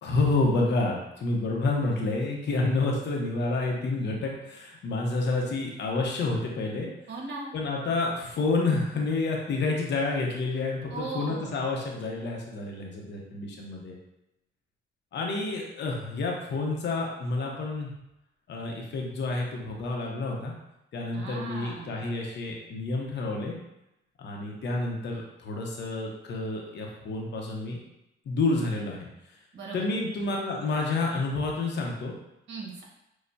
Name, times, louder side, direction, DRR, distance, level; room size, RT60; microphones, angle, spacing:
voice 1, 0.0-6.9 7.5-14.0 15.1-17.9 18.5-20.5 20.9-23.6 24.2-27.8 28.3-29.1 29.7-32.1, left 3 dB, 65° left, -1 dB, 0.9 m, -29 dB
voice 2, 7.1-7.5 10.9-11.6 21.1-22.0 29.5-29.9 32.5-32.8, right 3 dB, 65° right, -2 dB, 1.3 m, -38 dB
6.4 x 2.3 x 2.7 m, 0.88 s
cardioid pair, 90°, 20 cm